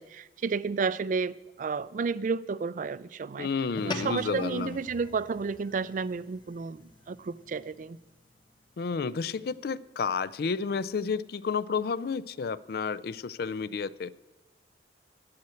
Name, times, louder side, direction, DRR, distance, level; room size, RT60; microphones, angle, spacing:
voice 1, 0.0-3.5 3.8-6.8 7.1-8.0, right 5 dB, 45° right, 0.3 m, -31 dB
voice 2, 3.4-4.8 8.8-14.1, left 5 dB, 60° left, 0.4 m, -31 dB
sound 1, 3.7-8.4, left 2 dB, 25° left, 1.0 m, -43 dB
8.5 x 7.8 x 9.0 m
head